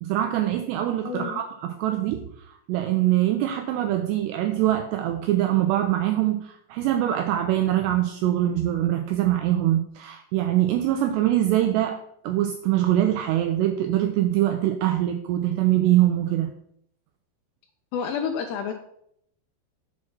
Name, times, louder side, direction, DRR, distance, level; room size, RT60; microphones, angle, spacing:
voice 1, 0.0-12.0 12.2-16.5, right 13 dB, 85° right, 6 dB, 2.4 m, -23 dB
voice 2, 1.1-1.4 17.9-18.7, left 6 dB, 80° left, 6 dB, 2.5 m, -29 dB
7.4 x 4.4 x 5.9 m, 0.71 s
omnidirectional pair, 5.4 m